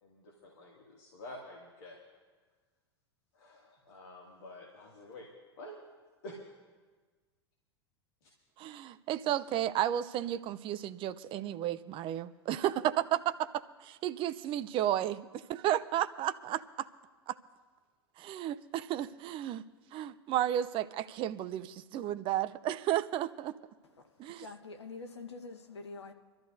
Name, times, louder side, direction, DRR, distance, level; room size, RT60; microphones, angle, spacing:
voice 1, 0.0-2.0 3.3-5.8 6.2-6.5 8.2-8.3, left 1 dB, 65° left, -2 dB, 2.2 m, -49 dB
voice 2, 8.6-16.9 17.3-17.4 18.2-19.6 19.9-23.5 24.2-24.5, right 12 dB, 40° right, 14 dB, 0.6 m, -33 dB
voice 3, 23.8-26.1, left 3 dB, 85° left, 5 dB, 1.2 m, -46 dB
25.5 x 13.0 x 2.6 m, 1.4 s
hypercardioid pair, 90°, 14 cm